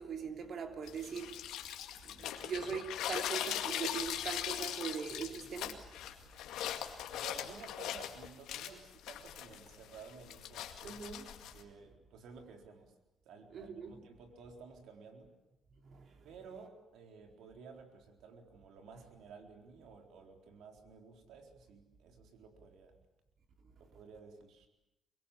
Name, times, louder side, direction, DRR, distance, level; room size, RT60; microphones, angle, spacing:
voice 1, 0.0-1.4 2.0-5.8 10.8-11.3 13.5-14.0 15.8-16.1, right 6 dB, 60° right, 3.2 m, -41 dB
sound 1, 0.9-11.6, left 11 dB, 90° left, 2.2 m, -40 dB
voice 2, 7.1-12.9 13.2-15.3 16.2-23.0 23.8-24.7, right 5 dB, 80° right, 4.1 m, -54 dB
25.0 x 23.0 x 8.5 m
cardioid pair, 90°, 0 cm